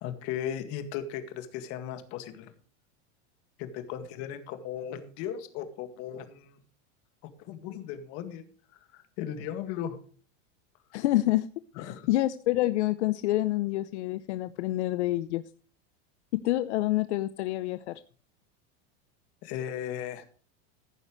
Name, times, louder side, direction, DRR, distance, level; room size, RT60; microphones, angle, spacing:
voice 1, 0.0-2.5 3.6-6.6 7.4-8.4 8.9-10.0 11.8-12.1 19.4-20.2, left 9 dB, 40° left, 9 dB, 2.0 m, -36 dB
voice 2, 10.9-11.5 11.8-15.4 16.4-18.0, left 16 dB, 70° left, 12 dB, 0.8 m, -27 dB
15.5 x 11.0 x 3.2 m, 0.43 s
supercardioid pair, 175°, 36 cm